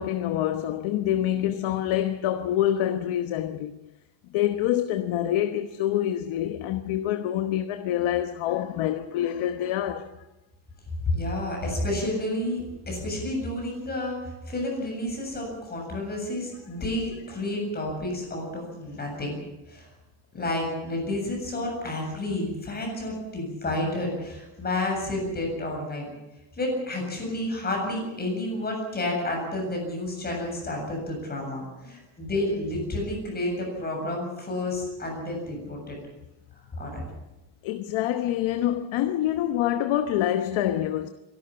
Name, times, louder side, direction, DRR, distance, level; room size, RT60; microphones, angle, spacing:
voice 1, 0.0-3.7 4.3-10.1 37.6-41.1, left 11 dB, 85° left, 1.3 m, -26 dB
voice 2, 11.1-19.4 19.7-19.9 20.3-26.1 26.6-36.0 36.8-37.0, left 1 dB, 20° left, 7.6 m, -30 dB
25.5 x 12.5 x 9.9 m
cardioid pair, 175°, 46 cm